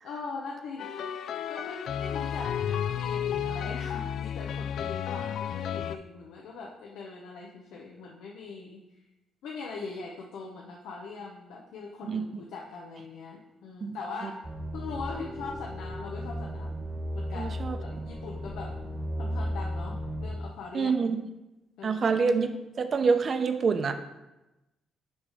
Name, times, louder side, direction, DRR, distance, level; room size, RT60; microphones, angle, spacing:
voice 1, 0.0-0.9 1.5-9.1 9.4-14.4 14.7-16.8 17.1-18.7 19.2-20.9 21.8-22.0, left 4 dB, 85° left, -1 dB, 0.8 m, -41 dB
sound 1, 0.8-6.0, left 9 dB, 70° left, 0.3 m, -32 dB
sound 2, 14.4-20.4, equal, 20° right, 1.1 m, -35 dB
voice 2, 17.4-17.8 20.7-21.2 21.8-22.5 22.8-23.9, right 5 dB, 45° right, 8 dB, 0.6 m, -26 dB
9.6 x 3.2 x 4.9 m, 0.99 s
cardioid pair, 90°, 0 cm